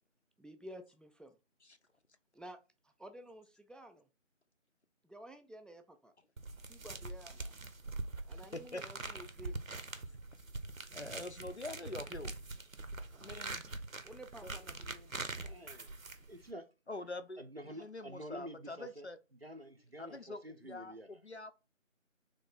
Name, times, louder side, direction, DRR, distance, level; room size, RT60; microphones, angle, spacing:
voice 1, 0.4-1.4 2.3-2.6 3.0-4.1 5.0-6.1 6.7-7.6 8.3-9.8 13.1-13.5 14.0-15.2, right 1 dB, ahead, 0.4 m, -52 dB
sound 1, 6.4-16.5, right 3 dB, 90° right, 0.8 m, -44 dB
voice 2, 8.5-8.8 10.9-12.3 13.2-13.6 14.4-14.5 16.9-19.2 20.0-21.5, left 2 dB, 55° left, 0.5 m, -45 dB
voice 3, 15.4-15.9 16.3-16.7 17.4-19.1 19.4-21.2, right 1 dB, 50° right, 0.6 m, -49 dB
3.6 x 3.3 x 4.0 m
figure-of-eight pair, 170°, 39 cm